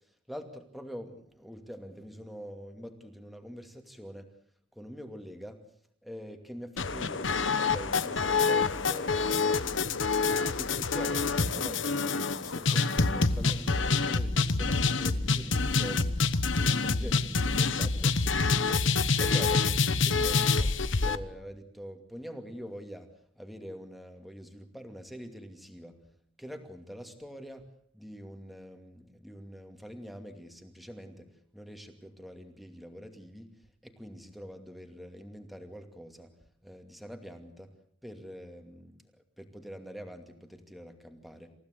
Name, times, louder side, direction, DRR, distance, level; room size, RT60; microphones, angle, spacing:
voice 1, 0.3-4.3 4.7-5.6 6.0-10.0 10.6-16.3 16.6-20.8 21.0-26.0 26.4-27.7 27.9-33.5 33.8-36.3 36.6-37.7 38.0-39.0 39.4-41.5, equal, ahead, 5 dB, 2.5 m, -45 dB
sound 1, 6.8-21.2, left 4 dB, 65° left, 1.2 m, -27 dB
28.0 x 16.0 x 8.3 m, 0.63 s
head